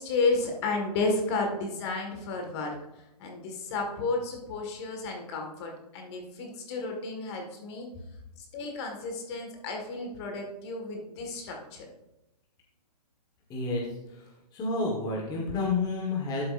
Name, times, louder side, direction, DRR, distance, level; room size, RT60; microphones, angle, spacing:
voice 1, 0.0-2.8 3.2-7.9 8.4-11.9, left 3 dB, 40° left, 2 dB, 1.9 m, -32 dB
voice 2, 13.5-14.2 14.5-16.4, left 3 dB, 20° left, -2 dB, 1.6 m, -30 dB
12.5 x 7.7 x 2.6 m, 0.95 s
hypercardioid pair, 145°, 21 cm